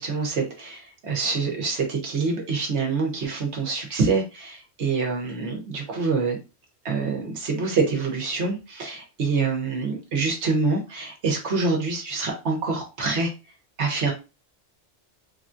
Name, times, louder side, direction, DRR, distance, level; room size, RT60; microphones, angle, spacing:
voice 1, 0.0-6.4 6.8-13.3 13.8-14.1, right 4 dB, 70° right, 1 dB, 1.3 m, -26 dB
3.5 x 2.3 x 2.6 m, 0.29 s
omnidirectional pair, 1.2 m